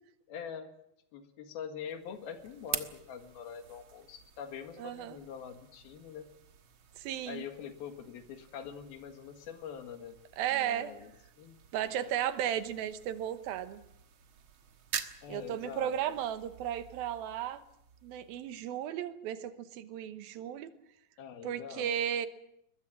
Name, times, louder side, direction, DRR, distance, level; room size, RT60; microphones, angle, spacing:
voice 1, 0.3-0.7 1.1-6.3 7.3-10.2 10.5-11.1 11.4-11.6 15.2-15.9 21.2-21.9, left 7 dB, 85° left, 7 dB, 3.7 m, -44 dB
sound 1, 1.9-18.8, right 8 dB, 60° right, 1.3 m, -47 dB
voice 2, 4.8-5.2 7.0-7.4 10.4-11.0 11.7-13.8 15.3-17.6 18.0-20.7 21.4-22.3, right 10 dB, 80° right, 11 dB, 2.9 m, -34 dB
21.5 x 21.5 x 7.4 m, 0.74 s
omnidirectional pair, 4.3 m